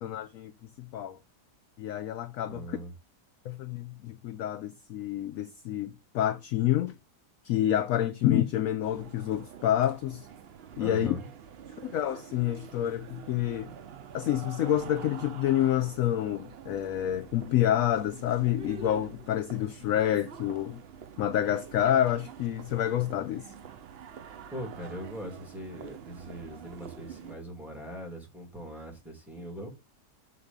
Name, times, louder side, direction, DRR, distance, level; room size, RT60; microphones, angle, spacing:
voice 1, 0.0-0.5 0.8-1.2 1.8-2.8 3.5-5.9 6.1-6.9 7.4-10.3 10.8-11.1 11.8-13.7 14.1-20.8 21.2-23.5, left 11 dB, 70° left, 0.8 m, -28 dB
voice 2, 2.5-2.9 10.8-11.3 24.5-29.7, equal, ahead, 2.3 m, -40 dB
sound 1, 8.8-27.4, right 7 dB, 90° right, 0.5 m, -46 dB
6.9 x 4.0 x 5.2 m
omnidirectional pair, 1.8 m